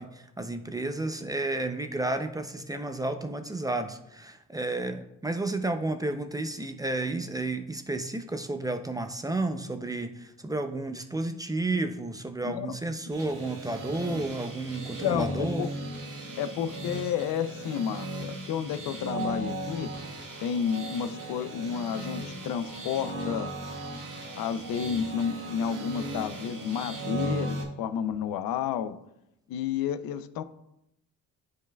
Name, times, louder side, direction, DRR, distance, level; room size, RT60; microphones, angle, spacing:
voice 1, 0.0-15.7, right 2 dB, 10° right, 7 dB, 0.4 m, -32 dB
voice 2, 12.4-12.7 15.0-15.7 16.4-19.9 20.4-23.5 24.4-29.0 29.5-30.4, left 8 dB, 85° left, 12 dB, 0.5 m, -31 dB
sound 1, 13.1-27.6, right 1 dB, 60° right, 1.9 m, -36 dB
10.5 x 4.8 x 2.3 m, 0.82 s
cardioid pair, 100°, 34 cm